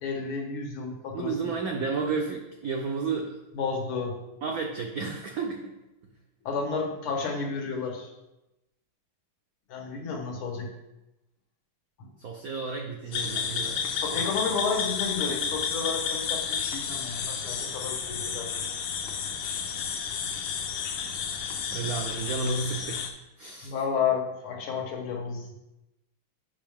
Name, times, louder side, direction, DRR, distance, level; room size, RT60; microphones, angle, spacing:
voice 1, 0.0-1.5 3.5-4.2 6.5-8.1 9.7-10.7 13.9-18.5 23.6-25.6, left 5 dB, 85° left, 1 dB, 2.1 m, -31 dB
voice 2, 1.1-3.4 4.4-5.7 12.2-14.2 21.7-23.1 23.4-23.7, right 4 dB, 90° right, 2 dB, 0.7 m, -32 dB
sound 1, 13.1-23.1, left 6 dB, 65° left, 1.3 m, -31 dB
6.9 x 5.4 x 3.5 m, 0.94 s
omnidirectional pair, 2.4 m